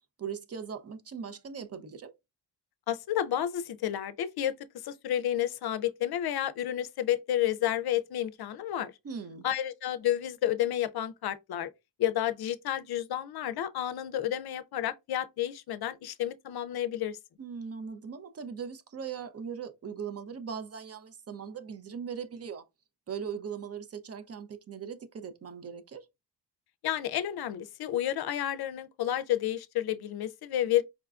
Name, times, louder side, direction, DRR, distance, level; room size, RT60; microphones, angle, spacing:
voice 1, 0.2-2.1 9.0-9.5 17.4-22.6 23.1-26.1, right 7 dB, 35° right, 0.6 m, -39 dB
voice 2, 2.9-4.5 4.8-8.9 9.4-11.7 12.0-17.2 26.8-30.8, left 11 dB, 60° left, 0.5 m, -30 dB
4.9 x 2.2 x 2.4 m
cardioid pair, 95°, 42 cm